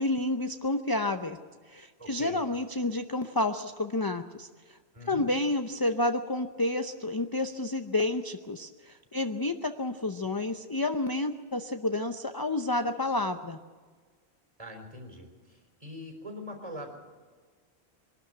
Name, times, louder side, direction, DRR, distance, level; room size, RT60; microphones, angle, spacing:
voice 1, 0.0-1.4 1.7-4.8 5.1-13.6, left 2 dB, 25° left, 7 dB, 0.6 m, -30 dB
voice 2, 2.0-2.4 4.9-5.3 14.6-16.9, equal, 35° right, 3 dB, 4.2 m, -43 dB
23.0 x 12.5 x 9.0 m, 1.5 s
omnidirectional pair, 1.1 m